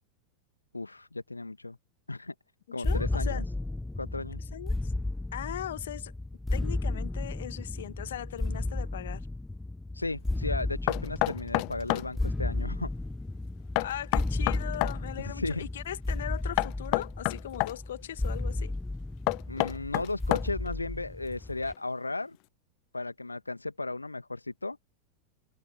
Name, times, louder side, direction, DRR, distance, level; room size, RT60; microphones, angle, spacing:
voice 1, 0.7-1.8 2.1-2.3 2.7-3.4 4.0-4.5 9.9-12.9 15.2-15.7 19.5-22.4 22.9-24.8, left 2 dB, 80° left, 1.7 m, -35 dB
voice 2, 2.8-3.4 4.5-4.9 5.3-6.1 6.5-9.3 13.8-18.7, left 11 dB, 60° left, 2.4 m, -39 dB
sound 1, 2.8-21.7, left 2 dB, 5° left, 1.0 m, -33 dB
Knock, 10.9-12.1 13.8-15.0 16.6-17.8 19.3-20.7, left 35 dB, 45° left, 0.5 m, -28 dB
figure-of-eight pair, 90°, 0 cm